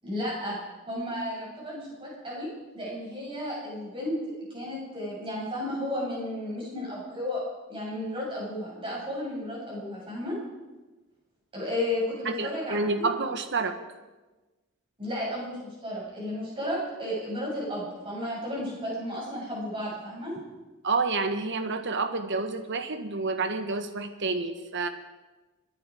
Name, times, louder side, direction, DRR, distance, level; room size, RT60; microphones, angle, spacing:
voice 1, 0.0-0.6 0.9-4.2 4.5-7.4 7.7-10.4 11.5-13.1 15.0-20.4, left 1 dB, 25° right, -5 dB, 7.5 m, -33 dB
voice 2, 12.2-13.8 20.8-24.9, right 3 dB, 55° right, 8 dB, 1.4 m, -29 dB
26.0 x 10.5 x 5.0 m, 1.2 s
head